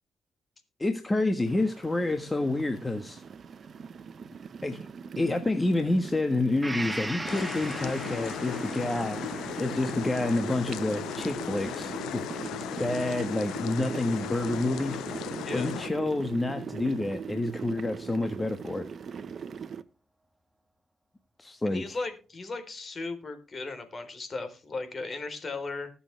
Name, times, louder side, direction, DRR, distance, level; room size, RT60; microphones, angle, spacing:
voice 1, 0.8-3.2 4.6-4.9 5.2-9.2 9.6-12.2 12.8-15.0 15.5-18.9 21.4-22.0, left 2 dB, 20° left, 7 dB, 1.5 m, -28 dB
sound 1, 1.5-19.8, right 6 dB, 55° right, 1.0 m, -40 dB
Gong, 6.6-14.3 14.6-14.7, right 1 dB, 10° right, 1.5 m, -41 dB
sound 2, 7.3-15.9, left 12 dB, 85° left, 0.5 m, -37 dB
voice 2, 21.6-25.9, left 3 dB, 45° left, 8 dB, 3.9 m, -36 dB
20.0 x 7.1 x 3.4 m, 0.35 s
supercardioid pair, 60°, 0 cm